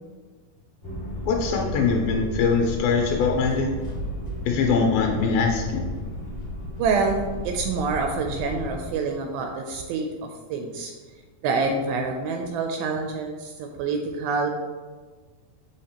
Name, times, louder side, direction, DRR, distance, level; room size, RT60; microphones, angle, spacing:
sound 1, 0.8-8.9, left 1 dB, 30° left, 0.7 m, -35 dB
voice 1, 1.3-3.7 4.5-5.9, left 5 dB, 85° left, 1 dB, 2.4 m, -22 dB
sound 2, 1.6-8.7, right 1 dB, 65° left, 1.8 m, -38 dB
voice 2, 6.8-10.1 10.5-10.9 11.4-14.5, right 4 dB, 80° right, 2 dB, 2.3 m, -26 dB
6.4 x 5.6 x 2.9 m, 1.4 s
omnidirectional pair, 4.4 m